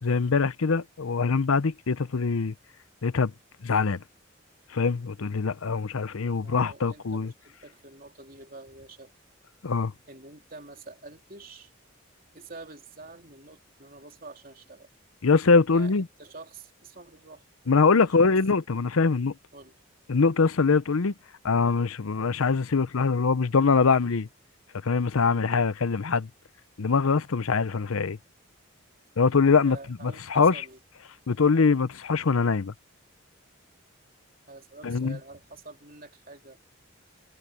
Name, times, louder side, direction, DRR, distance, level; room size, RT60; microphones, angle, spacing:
voice 1, 0.0-2.5 3.0-3.3 3.6-4.0 4.7-7.3 9.6-9.9 15.2-16.1 17.7-19.3 20.1-21.1 21.4-24.3 24.8-26.3 26.8-28.2 29.2-29.8 30.0-30.6 31.3-32.7 34.8-35.2, left 4 dB, 80° left, 0.7 m, -23 dB
voice 2, 6.3-9.1 10.1-11.7 12.3-14.9 15.7-17.4 18.0-18.3 19.5-19.7 22.0-22.1 29.6-30.8 34.5-36.6, right 3 dB, 40° right, 3.4 m, -47 dB
head